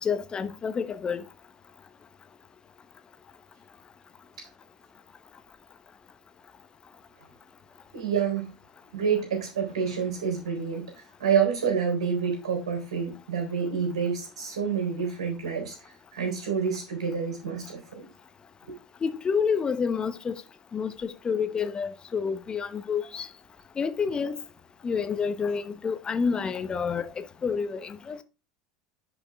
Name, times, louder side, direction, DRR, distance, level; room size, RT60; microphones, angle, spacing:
voice 1, 0.0-1.2 19.0-20.4 20.7-23.3 23.8-24.4 24.8-28.2, left 6 dB, 25° left, 0.9 m, -29 dB
voice 2, 7.9-8.5 8.9-15.8 16.1-18.1 18.7-18.8, right 6 dB, 75° right, 3.8 m, -28 dB
10.0 x 5.3 x 3.6 m
figure-of-eight pair, 80°, 3 cm